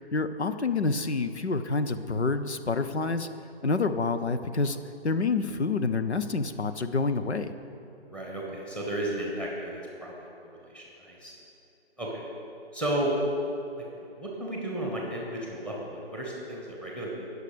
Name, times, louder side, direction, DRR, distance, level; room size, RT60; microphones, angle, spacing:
voice 1, 0.1-3.3 3.6-4.8 5.0-7.5, left 4 dB, 85° left, 10 dB, 0.8 m, -28 dB
voice 2, 8.1-11.3 12.0-12.2 12.7-13.2 14.0-17.1, right 1 dB, 5° left, -2 dB, 1.3 m, -33 dB
19.5 x 6.6 x 5.1 m, 2.7 s
figure-of-eight pair, 145°, 33 cm